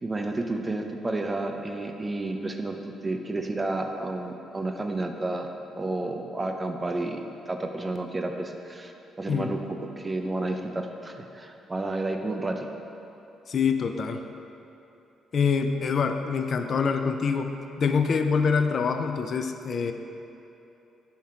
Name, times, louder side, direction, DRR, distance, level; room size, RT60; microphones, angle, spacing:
voice 1, 0.0-5.5 5.8-12.7, right 2 dB, 20° right, 4 dB, 0.5 m, -31 dB
voice 2, 13.5-14.2 15.3-19.9, left 5 dB, 50° left, 7 dB, 0.3 m, -25 dB
5.6 x 4.3 x 4.9 m, 2.9 s
cardioid pair, 90°, 0 cm